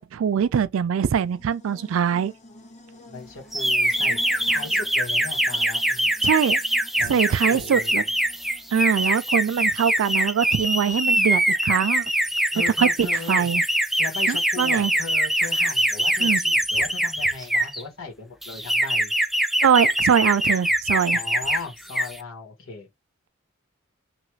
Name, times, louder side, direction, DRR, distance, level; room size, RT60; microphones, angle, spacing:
voice 1, 0.0-2.3 6.2-6.6 7.1-8.0 8.7-12.1 12.8-13.6 14.3-14.9 16.2-16.4 19.6-21.2, right 7 dB, 75° right, 0.4 m, -22 dB
Buzz, 1.0-9.2, left 1 dB, 35° left, 0.8 m, -48 dB
voice 2, 3.1-6.1 7.0-8.1 12.5-13.5 14.0-19.1 21.1-22.9, left 4 dB, 85° left, 1.6 m, -37 dB
sound 1, 3.5-17.8 18.4-21.6 21.9-22.2, right 1 dB, ahead, 0.3 m, -23 dB
3.1 x 2.4 x 3.1 m
head